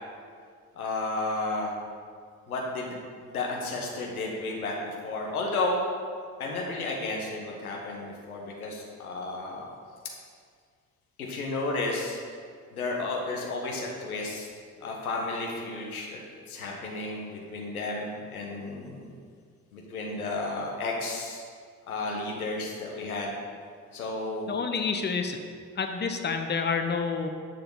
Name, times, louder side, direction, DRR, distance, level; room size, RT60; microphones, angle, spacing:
voice 1, 0.7-1.7 2.5-2.9 3.2-5.8 6.4-9.6 11.2-12.2 12.7-14.5 14.8-16.2 16.5-19.1 19.7-21.4 21.9-23.3 23.9-24.5, left 2 dB, 85° left, -1 dB, 1.3 m, -32 dB
voice 2, 24.5-25.4 25.8-27.3, left 5 dB, 25° left, 5 dB, 1.0 m, -28 dB
11.5 x 6.9 x 3.9 m, 2.1 s
figure-of-eight pair, 50°, 43 cm